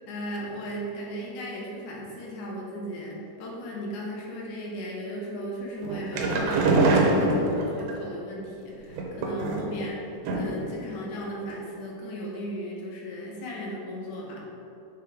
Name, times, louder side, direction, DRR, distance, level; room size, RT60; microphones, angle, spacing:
voice 1, 0.1-14.5, equal, 80° left, -2 dB, 2.4 m, -36 dB
sound 1, 5.8-7.9 8.9-9.8 10.2-10.7 11.0-11.1 11.4-11.5, right 2 dB, 85° right, 2.2 m, -24 dB
6.4 x 3.5 x 4.8 m, 3.0 s
omnidirectional pair, 3.5 m